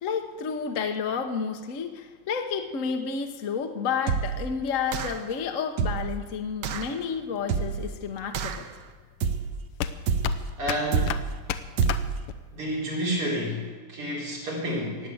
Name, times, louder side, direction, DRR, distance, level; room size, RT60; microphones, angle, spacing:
voice 1, 0.0-8.7, left 6 dB, 50° left, 5 dB, 1.1 m, -30 dB
sound 1, 4.1-4.5 4.9-5.3 5.8-6.2 6.6-6.9 7.5-7.9 8.3-8.7 9.2-9.6 10.1-10.5 10.9-11.3 11.8-12.2, right 6 dB, 60° right, 1.3 m, -27 dB
sound 2, 6.9-12.7, left 9 dB, 85° left, 1.6 m, -34 dB
voice 2, 10.6-11.2 12.5-15.1, equal, 85° right, -4 dB, 5.2 m, -30 dB
18.5 x 8.5 x 7.8 m, 1.4 s
omnidirectional pair, 2.4 m